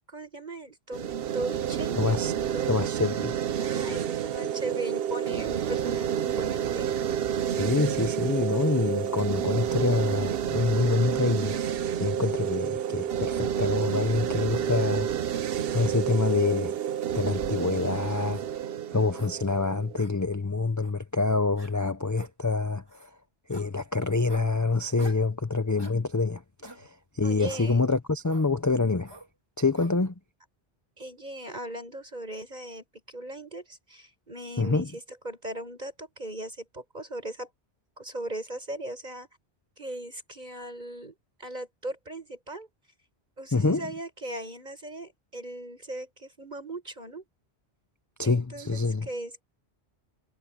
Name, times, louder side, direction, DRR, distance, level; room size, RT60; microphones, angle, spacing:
voice 1, 0.0-2.2 2.5-2.8 3.6-6.9 27.2-27.8 31.0-37.5 38.0-39.3 39.8-41.1 41.4-42.7 43.4-47.2 48.2-49.4, right 1 dB, 40° right, 6.4 m, -38 dB
sound 1, 0.9-20.0, right 9 dB, 65° right, 0.8 m, -29 dB
voice 2, 1.9-2.3 2.7-3.3 7.5-15.1 15.7-16.7 17.1-18.4 18.9-23.1 23.5-26.9 27.1-29.1 29.6-30.1 34.6-34.9 43.5-43.8 48.2-49.1, left 3 dB, 20° left, 0.6 m, -26 dB
sound 2, 15.7-15.9 16.4-16.5 17.1-17.7 18.3-18.5 19.1-19.3 20.0-20.1 20.8-20.9 21.6-21.7 22.1-22.3 22.9-23.1 23.5-23.7 24.3-24.5 25.0-25.3 25.8-26.0 26.6-26.8 27.5-27.7 28.3-28.5 29.0-29.3 29.7-29.9, right 2 dB, 20° right, 2.1 m, -47 dB
omnidirectional pair, 1.1 m